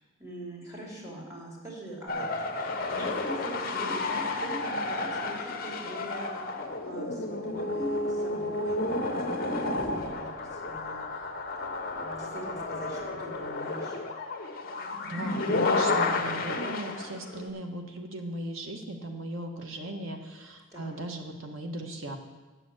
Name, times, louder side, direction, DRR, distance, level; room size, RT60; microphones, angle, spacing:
voice 1, 0.2-2.2 2.5-6.3 6.8-11.0 11.6-14.0 20.7-21.0, right 1 dB, 15° right, -4 dB, 2.9 m, -41 dB
sound 1, 2.1-17.5, left 2 dB, 50° left, 1.0 m, -31 dB
voice 2, 15.0-22.2, right 1 dB, 85° right, 4 dB, 1.2 m, -38 dB
8.2 x 6.9 x 7.6 m, 1.2 s
head